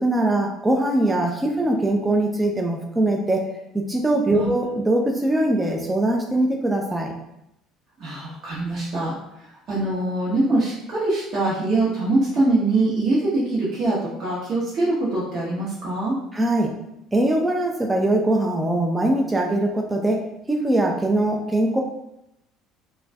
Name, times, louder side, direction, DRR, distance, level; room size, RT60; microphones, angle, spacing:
voice 1, 0.0-3.4 3.9-7.1 16.3-16.7 17.1-21.8, right 1 dB, 15° right, 0 dB, 0.4 m, -22 dB
voice 2, 8.0-16.1, right 2 dB, 50° right, -8 dB, 0.9 m, -23 dB
2.4 x 2.2 x 3.3 m, 0.83 s
hypercardioid pair, 60°, 0 cm